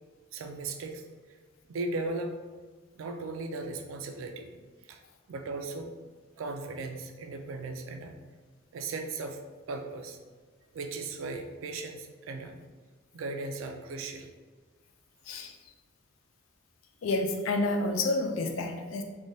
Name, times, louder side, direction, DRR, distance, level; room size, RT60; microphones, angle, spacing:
voice 1, 0.3-1.0 1.7-2.4 2.9-4.5 4.8-5.0 5.3-5.9 6.4-8.2 8.7-9.4 9.7-10.2 10.7-12.6 13.1-14.3, right 3 dB, 80° right, 5 dB, 0.4 m, -37 dB
voice 2, 17.0-19.0, left 2 dB, 85° left, 5 dB, 0.4 m, -29 dB
3.2 x 2.2 x 2.6 m, 1.4 s
head